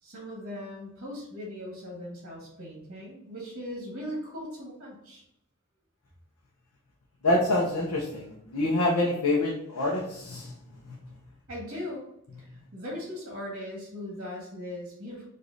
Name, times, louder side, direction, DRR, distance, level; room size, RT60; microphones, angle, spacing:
voice 1, 0.0-5.2 11.5-12.0 12.4-15.3, left 1 dB, 45° right, -3 dB, 1.3 m, -39 dB
voice 2, 7.2-10.5 10.8-11.0, left 1 dB, 80° left, -3 dB, 0.8 m, -26 dB
5.0 x 2.7 x 3.9 m, 0.77 s
head